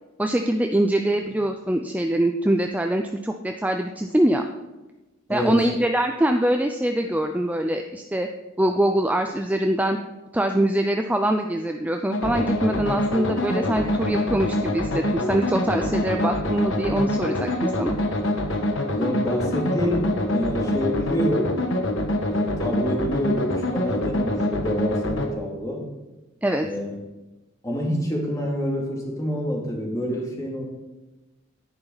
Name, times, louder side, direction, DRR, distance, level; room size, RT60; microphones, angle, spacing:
voice 1, 0.2-4.5 5.3-8.3 8.6-10.0 10.3-18.0 26.4-26.7, right 1 dB, 10° right, 5 dB, 0.5 m, -23 dB
voice 2, 5.3-5.7 18.9-21.6 22.3-25.9 26.6-26.9 27.6-30.6, equal, 15° left, -1 dB, 2.4 m, -27 dB
sound 1, 12.1-25.3, left 1 dB, 75° left, 1.4 m, -25 dB
11.0 x 10.5 x 4.0 m, 1.1 s
head